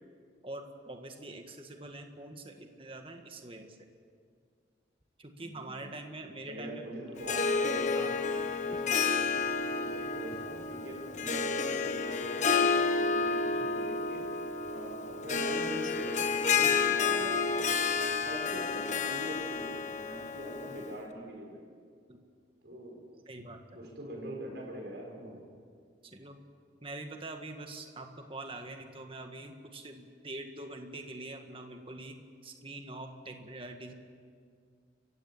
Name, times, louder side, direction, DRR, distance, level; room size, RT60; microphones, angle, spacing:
voice 1, 0.4-3.9 5.2-6.9 7.9-8.2 13.5-13.7 16.6-16.7 22.1-22.2 23.3-23.8 25.2-25.5 26.0-26.4 26.8-33.9, right 2 dB, 30° right, 5 dB, 1.8 m, -44 dB
voice 2, 5.4-5.9 6.4-8.0 8.6-9.3 9.8-14.2 14.7-17.8 18.2-21.6 22.6-23.0 23.7-25.3, right 1 dB, 65° right, -1 dB, 6.1 m, -43 dB
Harp, 7.2-20.9, left 5 dB, 40° left, 1.2 m, -30 dB
29.5 x 16.0 x 7.3 m, 2.1 s
head